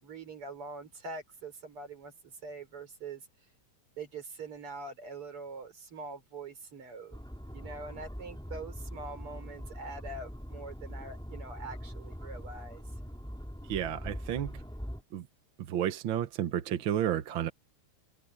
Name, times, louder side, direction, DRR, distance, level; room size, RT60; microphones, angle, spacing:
voice 1, 0.0-3.2 4.0-7.2 7.5-12.8, right 3 dB, 85° right, 5.0 m, -44 dB
sound 1, 7.1-15.0, equal, ahead, 4.8 m, -42 dB
voice 2, 13.6-14.6 15.1-15.3 15.6-17.5, right 11 dB, 70° right, 1.7 m, -31 dB
omnidirectional pair, 2.4 m